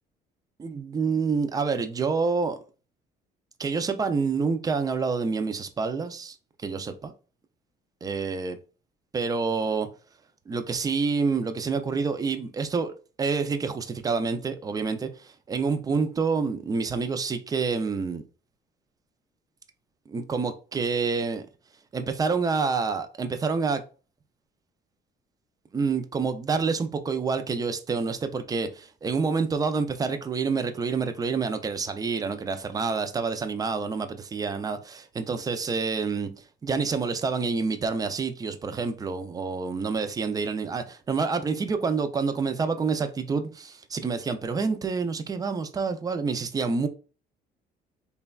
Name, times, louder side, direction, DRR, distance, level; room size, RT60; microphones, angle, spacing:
voice 1, 0.6-2.6 3.6-7.1 8.0-8.6 9.1-9.9 10.5-12.9 13.2-18.2 20.1-21.5 21.9-23.8 25.7-36.3 36.6-46.9, right 4 dB, 20° right, 0.3 m, -28 dB
3.2 x 2.1 x 2.2 m
cardioid pair, 110°, 17 cm